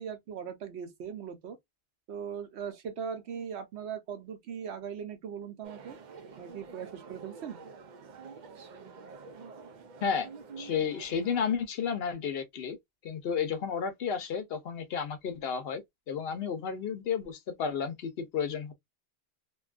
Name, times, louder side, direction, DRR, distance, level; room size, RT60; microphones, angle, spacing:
voice 1, 0.0-1.6 2.1-6.0 6.4-7.6, right 7 dB, 90° right, 1.0 m, -39 dB
sound 1, 5.6-11.5, right 5 dB, 55° right, 0.6 m, -48 dB
voice 2, 10.6-12.8 13.0-15.8 16.1-18.7, left 6 dB, 70° left, 0.8 m, -32 dB
2.6 x 2.2 x 2.3 m
omnidirectional pair, 1.1 m